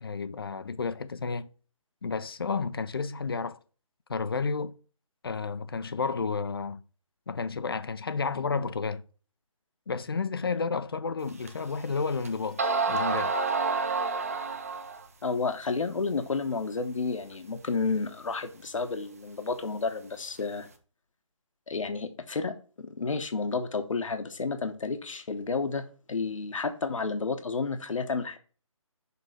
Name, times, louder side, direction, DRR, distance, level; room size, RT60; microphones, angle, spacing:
voice 1, 0.0-1.5 2.0-3.6 4.1-4.7 5.2-6.8 7.3-9.0 9.9-13.3, left 4 dB, 45° left, 0.5 m, -31 dB
sound 1, 11.5-11.6 12.2-12.3 12.6-15.0, right 4 dB, 25° right, 0.6 m, -28 dB
voice 2, 15.2-20.7 21.7-28.4, left 4 dB, 70° left, 1.0 m, -31 dB
6.8 x 3.1 x 6.0 m
hypercardioid pair, 170°, 17 cm